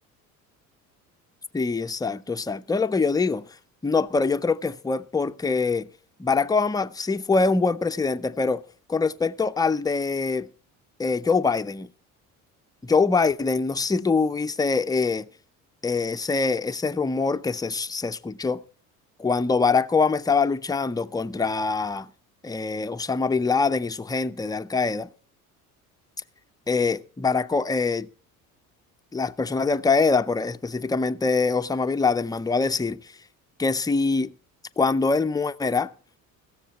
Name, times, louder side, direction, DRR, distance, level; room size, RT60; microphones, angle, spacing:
voice 1, 1.5-3.5 3.8-5.9 6.2-8.6 8.9-10.5 11.0-11.9 12.8-15.3 15.8-18.6 19.2-22.1 22.4-25.1 26.7-28.1 29.1-33.0 33.6-34.3 34.8-35.9, left 4 dB, 10° left, 0.6 m, -24 dB
16.5 x 7.2 x 5.9 m
hypercardioid pair, 65°, 42 cm